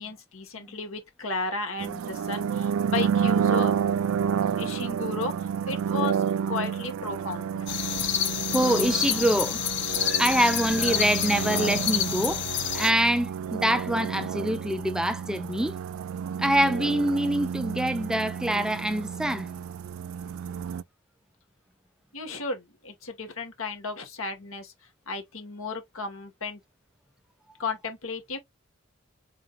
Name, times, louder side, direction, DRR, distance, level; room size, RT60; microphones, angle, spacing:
voice 1, 0.0-3.7 4.6-7.7 22.1-24.7 25.1-26.6 27.6-28.4, left 4 dB, 80° left, 1.6 m, -34 dB
sound 1, 1.8-20.8, right 7 dB, 85° right, 0.3 m, -30 dB
sound 2, 7.7-12.9, left 10 dB, 60° left, 0.7 m, -28 dB
voice 2, 8.5-9.6 10.0-12.5 12.7-15.7 16.4-19.5, equal, 5° right, 0.3 m, -25 dB
3.9 x 3.8 x 2.4 m
head